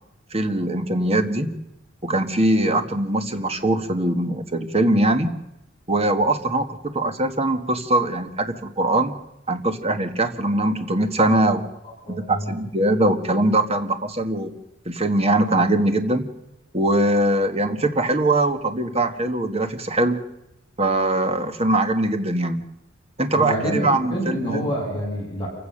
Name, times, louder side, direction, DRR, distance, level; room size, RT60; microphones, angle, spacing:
voice 1, 0.3-1.5 2.0-5.3 5.9-9.1 9.5-11.6 12.1-14.5 14.8-16.2 16.7-20.2 20.8-22.6 23.2-24.6, right 1 dB, 30° right, 8 dB, 1.6 m, -21 dB
voice 2, 12.0-12.5 23.3-25.5, equal, 25° left, -3 dB, 8.0 m, -27 dB
27.5 x 16.0 x 6.6 m, 0.89 s
head